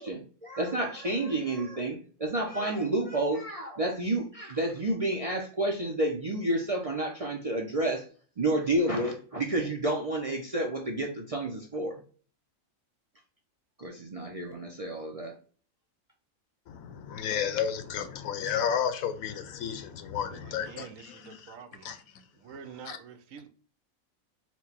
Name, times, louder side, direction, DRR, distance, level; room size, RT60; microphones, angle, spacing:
voice 1, 0.0-8.0 8.4-12.0 13.8-15.3, right 1 dB, 45° right, 0.4 m, -30 dB
voice 2, 16.7-21.6 21.8-22.0 22.8-23.0, left 8 dB, 85° left, 1.1 m, -32 dB
voice 3, 20.3-21.9 22.4-23.5, right 7 dB, 75° right, 1.0 m, -47 dB
4.4 x 2.2 x 4.1 m
omnidirectional pair, 1.4 m